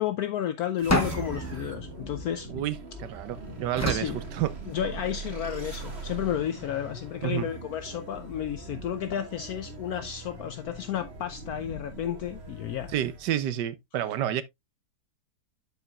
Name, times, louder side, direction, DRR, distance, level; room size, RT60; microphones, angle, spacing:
voice 1, 0.0-2.5 3.9-4.2 4.6-12.9, left 10 dB, 70° left, 1.0 m, -32 dB
sound 1, 0.8-13.4, right 2 dB, 40° right, 2.0 m, -42 dB
sound 2, 0.9-3.1 3.8-5.1, left 1 dB, 15° left, 0.6 m, -31 dB
voice 2, 2.5-4.5 7.2-7.5 12.9-14.4, right 11 dB, 85° right, 1.4 m, -30 dB
12.0 x 4.7 x 2.3 m
omnidirectional pair, 1.8 m